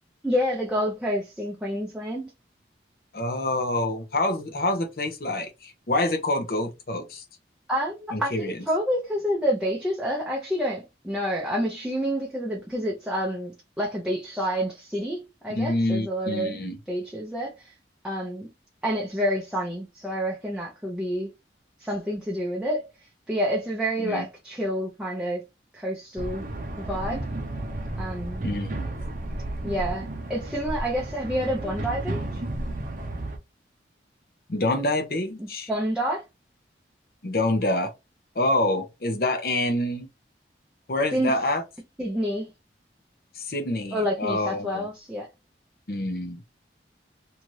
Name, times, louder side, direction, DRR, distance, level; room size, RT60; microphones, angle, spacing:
voice 1, 0.2-2.3 7.7-16.6 16.9-17.7 18.0-18.5 18.8-21.3 21.8-22.9 23.3-25.5 25.7-26.5 26.8-27.3 28.0-28.4 29.6-32.4 35.4-36.2 41.1-41.4 42.0-42.5 43.9-45.3, equal, 5° right, 0.6 m, -28 dB
voice 2, 3.1-7.2 8.1-8.5 15.6-16.8 24.0-24.3 28.4-28.9 34.5-35.7 37.2-37.9 38.4-40.1 40.9-41.6 43.4-44.9 45.9-46.4, left 1 dB, 55° left, 0.7 m, -26 dB
sound 1, 26.2-33.4, right 1 dB, 45° right, 0.6 m, -33 dB
2.7 x 2.5 x 3.0 m
head